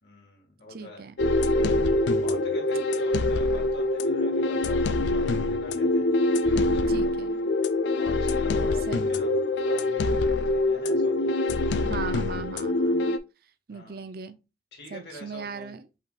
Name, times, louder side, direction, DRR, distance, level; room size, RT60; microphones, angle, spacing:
voice 1, 0.0-1.1 2.2-7.3 8.0-9.3 9.6-11.3 13.7-14.1 14.7-15.8, left 1 dB, 65° left, 2.1 m, -45 dB
voice 2, 0.7-1.1 6.9-7.5 8.9-9.1 11.8-14.4 14.9-15.9, right 5 dB, 55° right, 0.5 m, -39 dB
sound 1, 1.2-13.2, left 2 dB, 85° left, 0.4 m, -24 dB
5.6 x 3.4 x 2.4 m
head